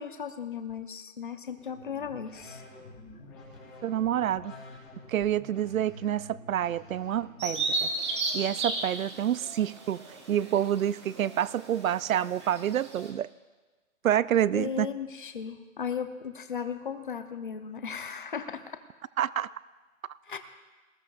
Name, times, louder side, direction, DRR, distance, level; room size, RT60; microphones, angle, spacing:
voice 1, 0.0-2.6 14.5-18.8 20.2-20.4, left 7 dB, 40° left, 9 dB, 0.8 m, -36 dB
sound 1, 1.6-7.9, left 2 dB, 10° left, 1.9 m, -49 dB
voice 2, 3.8-4.5 5.1-7.9 8.3-10.0 10.3-13.3 14.0-14.9 19.2-19.5, right 10 dB, 75° right, 19 dB, 0.5 m, -28 dB
Bird vocalization bird call bird song, 7.4-13.1, right 3 dB, 20° right, 1.2 m, -34 dB
19.5 x 16.0 x 2.5 m, 1.3 s
hypercardioid pair, 170°, 41 cm